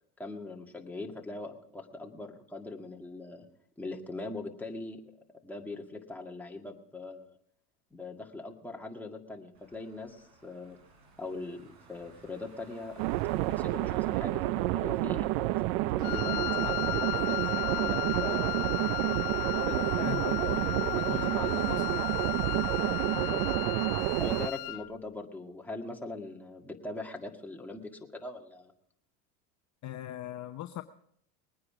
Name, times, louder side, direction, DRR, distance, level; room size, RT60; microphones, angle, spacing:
voice 1, 0.2-3.4 3.8-5.0 5.4-7.3 7.9-10.8 11.2-13.0 13.5-18.7 19.6-20.6 20.9-21.8 23.1-23.4 24.2-28.7, left 2 dB, 5° left, 1 dB, 1.9 m, -41 dB
Car / Engine, 9.5-17.7, right 3 dB, 50° right, 4.3 m, -58 dB
sound 1, 13.0-24.5, right 18 dB, 70° right, 0.6 m, -29 dB
Wind instrument woodwind instrument, 16.0-24.9, left 22 dB, 70° left, 0.6 m, -35 dB
voice 2, 20.0-22.0 23.1-23.3 29.8-30.8, left 13 dB, 40° left, 9 dB, 0.7 m, -40 dB
21.0 x 9.6 x 5.0 m, 0.68 s
supercardioid pair, 105°, 47 cm